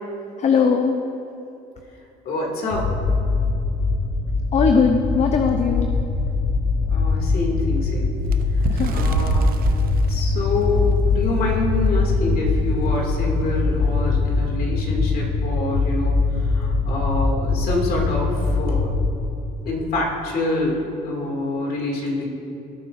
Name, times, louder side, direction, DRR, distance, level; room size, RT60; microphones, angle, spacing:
voice 1, 0.4-1.0 4.5-5.9 8.7-9.1, left 5 dB, 40° left, 4 dB, 0.7 m, -19 dB
voice 2, 2.2-2.9 6.9-8.1 8.9-9.4 10.1-18.9 19.7-22.3, left 2 dB, 65° left, -1 dB, 2.4 m, -26 dB
sound 1, 2.7-19.1, left 3 dB, 80° left, 1.7 m, -22 dB
Bird, 8.2-11.4 11.9-12.0 12.3-12.6 13.4-13.5, right 5 dB, 60° right, 0.7 m, -27 dB
17.0 x 9.1 x 2.6 m, 2.8 s
cardioid pair, 110°, 17 cm